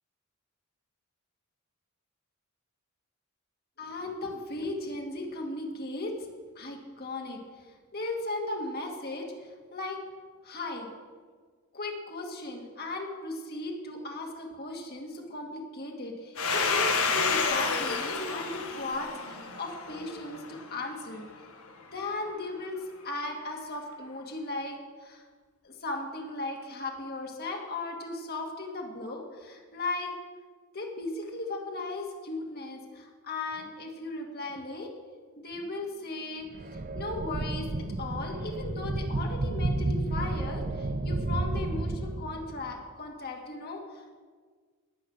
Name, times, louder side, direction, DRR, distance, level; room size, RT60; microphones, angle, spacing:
voice 1, 3.8-6.2 6.6-7.4 7.7-9.3 9.7-10.0 10.4-10.9 11.7-22.8 23.0-25.2 25.6-30.1 30.7-34.9 35.4-44.2, left 2 dB, 45° left, 1 dB, 2.3 m, -37 dB
Domestic sounds home sounds, 16.4-20.8, left 4 dB, 70° left, 1.5 m, -29 dB
sound 1, 36.5-42.7, right 2 dB, 40° right, 0.6 m, -31 dB
19.5 x 8.1 x 6.4 m, 1.5 s
head